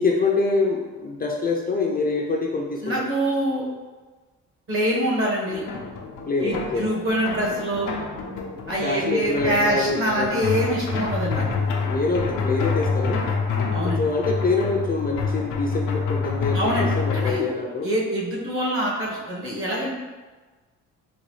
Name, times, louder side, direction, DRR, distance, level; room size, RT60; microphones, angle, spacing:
voice 1, 0.0-3.0 6.3-6.9 8.8-10.4 11.9-13.2 13.8-17.9, left 3 dB, 30° left, 0 dB, 0.4 m, -25 dB
voice 2, 2.8-3.6 4.7-5.6 6.4-7.9 8.7-11.5 13.7-14.0 16.5-17.4 17.8-19.9, equal, 45° right, -3 dB, 1.1 m, -25 dB
sound 1, 5.5-17.3, left 4 dB, 90° left, 0.6 m, -27 dB
4.0 x 2.2 x 3.1 m, 1.3 s
cardioid pair, 90°, 30 cm